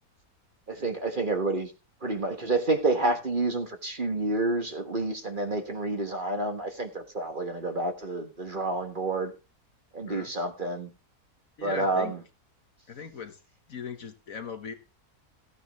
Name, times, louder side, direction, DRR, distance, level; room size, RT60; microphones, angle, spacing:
voice 1, 0.7-1.7 2.0-9.3 9.9-10.9 11.6-12.2, right 2 dB, 35° right, 6 dB, 1.6 m, -29 dB
voice 2, 11.6-12.1 12.9-13.4 13.7-14.7, left 6 dB, 60° left, 8 dB, 1.7 m, -38 dB
15.0 x 9.6 x 3.1 m, 0.29 s
omnidirectional pair, 1.6 m